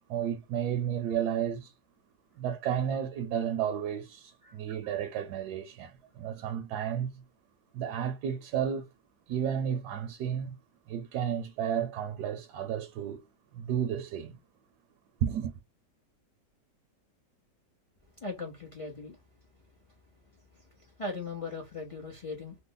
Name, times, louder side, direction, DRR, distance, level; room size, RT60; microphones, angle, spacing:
voice 1, 0.1-1.7 2.4-7.2 7.7-8.9 9.3-10.6 10.9-13.2 13.5-14.4 15.2-15.6, right 9 dB, 75° right, 1.1 m, -32 dB
voice 2, 18.2-19.2 20.3-22.6, left 3 dB, 50° left, 0.3 m, -39 dB
3.1 x 2.1 x 3.8 m
omnidirectional pair, 1.9 m